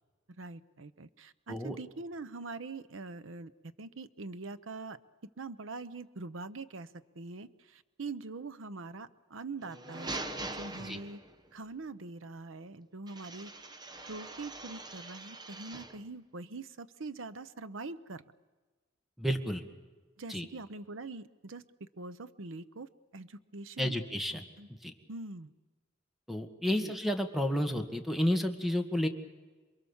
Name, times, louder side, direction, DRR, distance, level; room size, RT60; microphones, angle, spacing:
voice 1, 0.4-3.5 3.8-11.2 11.5-13.5 14.1-18.2 20.2-24.0 24.6-24.7 25.1-25.5 26.7-26.9, right 3 dB, 80° right, 13 dB, 0.8 m, -43 dB
sound 1, 9.6-11.5 13.1-16.1, right 2 dB, 20° right, 1.1 m, -43 dB
voice 2, 19.2-19.6 20.3-20.5 23.8-24.5 24.8-24.9 26.3-29.1, equal, ahead, 6 dB, 1.8 m, -31 dB
28.0 x 22.0 x 7.2 m, 1.3 s
head